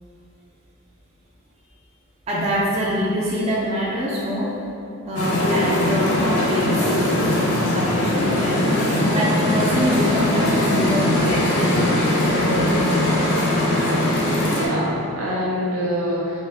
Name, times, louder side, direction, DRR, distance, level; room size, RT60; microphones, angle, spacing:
voice 1, 2.3-4.5 5.1-7.1 7.4-12.9, equal, 30° right, -6 dB, 0.4 m, -25 dB
sound 1, 5.2-14.7, left 1 dB, 85° left, 0.5 m, -20 dB
voice 2, 5.4-5.7 14.5-16.4, equal, 85° right, -5 dB, 0.8 m, -25 dB
3.5 x 2.1 x 3.3 m, 2.9 s
head